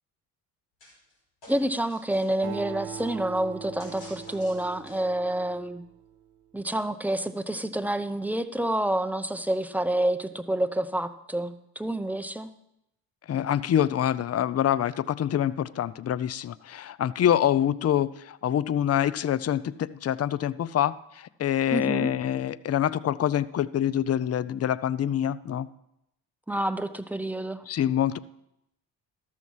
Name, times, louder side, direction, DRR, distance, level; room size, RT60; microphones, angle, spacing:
sound 1, 0.8-1.1 1.4-2.5 3.8-5.2, left 1 dB, 60° left, 4.6 m, -50 dB
voice 1, 1.5-5.8 6.5-12.5 21.7-22.1 26.5-27.6, right 1 dB, 5° right, 10 dB, 0.7 m, -28 dB
Acoustic guitar, 2.4-6.2, right 9 dB, 55° right, 1.1 m, -41 dB
voice 2, 13.3-25.7 27.7-28.2, left 10 dB, 35° left, 18 dB, 0.5 m, -26 dB
13.0 x 6.3 x 5.5 m, 0.82 s
supercardioid pair, 55°, 47 cm